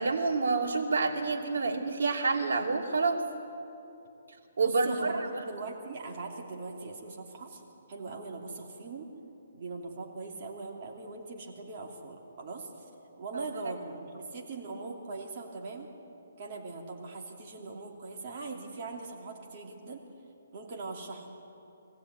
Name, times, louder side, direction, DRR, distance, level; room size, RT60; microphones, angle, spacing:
voice 1, 0.0-3.2 4.6-5.4 13.3-13.4, right 3 dB, 80° right, 1 dB, 2.9 m, -28 dB
voice 2, 4.6-7.6 7.9-9.1 9.5-12.7 13.2-15.9 16.4-20.0 20.5-21.3, right 3 dB, 35° right, 0 dB, 2.9 m, -41 dB
23.0 x 15.5 x 9.4 m, 2.8 s
hypercardioid pair, 170°, 0 cm